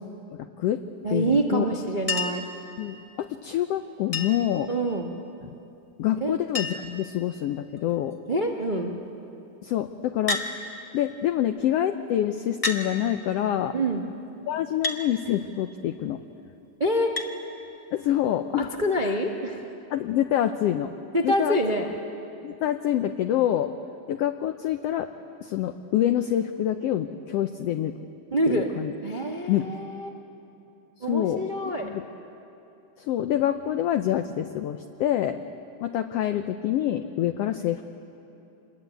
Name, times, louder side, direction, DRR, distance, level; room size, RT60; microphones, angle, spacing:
voice 1, 0.3-0.8 1.1-1.6 2.8-4.7 6.0-8.2 9.6-10.4 10.9-13.7 14.5-16.2 17.9-18.7 19.0-19.1 19.9-20.9 21.2-21.6 22.4-23.7 24.1-25.1 25.4-28.0 28.5-28.9 29.5-29.7 31.1-31.4 31.8-32.0 33.0-35.4 35.8-37.8, left 11 dB, 75° left, 8 dB, 1.4 m, -26 dB
voice 2, 1.0-2.4 4.7-5.1 6.2-6.4 8.3-8.9 13.7-14.0 16.8-17.1 18.8-19.6 21.1-21.9 28.3-28.7 29.0-30.1 31.0-31.9, right 1 dB, 60° right, 1 dB, 0.5 m, -26 dB
Chink clink, 2.1-2.5 4.1-4.5 5.9-6.0 6.2-6.3 6.5-7.0 7.8-8.1 10.3-10.5 11.6-11.7 12.6-12.9 14.8-15.0 17.2-17.3 18.7-18.8, left 3 dB, 25° left, 0.7 m, -29 dB
26.5 x 21.5 x 9.3 m, 2.9 s
omnidirectional pair, 3.5 m